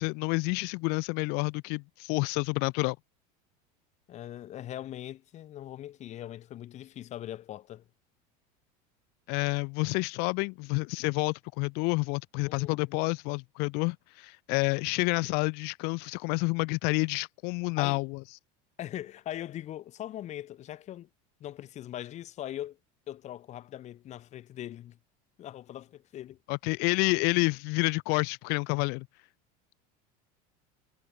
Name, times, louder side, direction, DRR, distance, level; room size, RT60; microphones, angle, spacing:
voice 1, 0.0-3.0 9.3-18.2 26.5-29.1, left 31 dB, 60° left, 0.6 m, -29 dB
voice 2, 4.1-7.8 12.5-12.8 17.8-18.0 18.8-21.1 21.4-22.8 23.1-25.0 25.4-26.4, left 12 dB, 40° left, 3.8 m, -41 dB
supercardioid pair, 145°, 19 cm